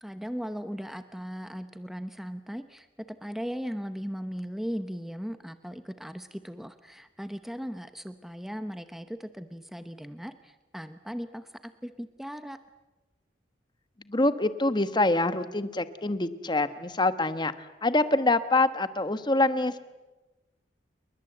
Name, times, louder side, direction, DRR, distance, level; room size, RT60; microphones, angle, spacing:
voice 1, 0.0-12.6, equal, ahead, 10 dB, 0.9 m, -38 dB
voice 2, 14.1-17.5 17.8-19.8, left 2 dB, 25° left, 11 dB, 1.3 m, -25 dB
29.0 x 22.5 x 8.0 m, 1.1 s
head